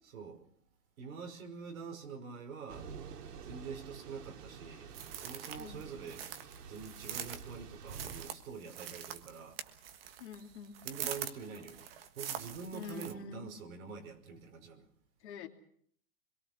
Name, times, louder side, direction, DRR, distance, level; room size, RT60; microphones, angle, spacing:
voice 1, 0.0-0.5 1.0-2.9 3.4-6.3 6.7-9.6 10.8-11.9 12.1-14.9, right 5 dB, 60° right, 5.3 m, -46 dB
Thunder / Rain, 2.7-8.3, right 6 dB, 90° right, 2.4 m, -49 dB
sound 1, 4.9-13.1, right 9 dB, 40° right, 1.6 m, -44 dB
voice 2, 5.6-5.9 10.2-10.8 12.7-13.5 15.2-15.5, left 5 dB, 45° left, 3.1 m, -46 dB
25.5 x 22.5 x 6.2 m
supercardioid pair, 180°, 46 cm